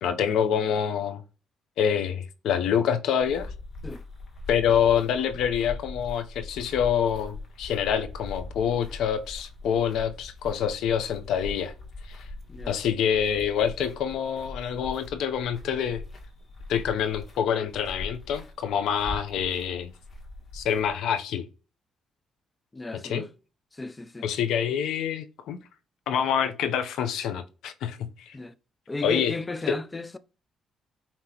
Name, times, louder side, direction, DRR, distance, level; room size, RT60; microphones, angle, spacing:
voice 1, 0.0-1.2 1.8-3.5 4.5-11.7 12.1-12.2 12.7-16.0 16.7-19.9 20.5-21.5 23.0-23.2 24.2-25.6 26.1-28.4 29.0-29.3 29.7-29.8, left 8 dB, 80° left, 0.7 m, -26 dB
sound 1, 3.2-21.0, left 2 dB, 45° left, 1.6 m, -41 dB
voice 2, 12.5-12.8 22.7-23.3 23.7-24.3 28.3-28.5 28.9-30.2, left 3 dB, 20° left, 0.5 m, -35 dB
5.3 x 2.9 x 2.9 m
cardioid pair, 90°, 0 cm